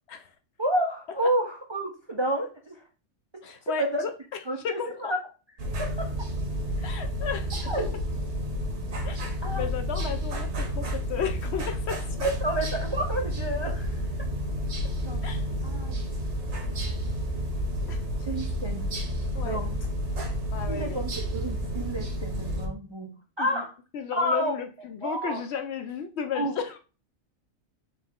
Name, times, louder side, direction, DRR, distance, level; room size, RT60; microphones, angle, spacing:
voice 1, 0.6-2.8 3.7-4.0 4.5-5.2 5.7-6.3 6.8-6.9 7.7-7.9 9.4-9.7 10.0-10.2 12.2-14.0 15.0-16.1 16.4-17.0 18.2-18.9 19.4-19.8 20.7-23.1 23.4-23.7 24.2-24.5 25.0-25.4 26.3-26.6, right 1 dB, 40° right, 0.3 m, -30 dB
voice 2, 3.4-4.1 4.6-5.1 6.8-7.7 9.0-12.3 15.2-15.5 17.9-18.1 19.3-19.6 20.5-21.1 23.4-23.6 23.9-26.8, left 7 dB, 65° left, 0.7 m, -34 dB
sound 1, 5.6-22.7, equal, 60° right, 1.3 m, -30 dB
4.1 x 3.1 x 3.6 m
omnidirectional pair, 1.4 m